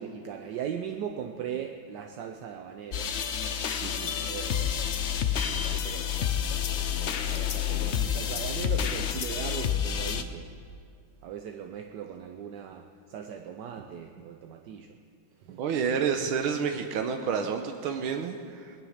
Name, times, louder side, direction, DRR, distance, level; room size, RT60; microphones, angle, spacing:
voice 1, 0.0-3.1 4.3-5.0 5.4-6.5 7.0-10.5 11.2-14.9 15.4-15.6, right 8 dB, 70° right, 5 dB, 1.2 m, -39 dB
sound 1, 2.9-10.2, left 9 dB, 75° left, 0.6 m, -29 dB
voice 2, 3.8-4.2 15.6-18.8, right 6 dB, 90° right, 5 dB, 1.7 m, -30 dB
20.0 x 10.5 x 6.5 m, 2.3 s
omnidirectional pair, 2.2 m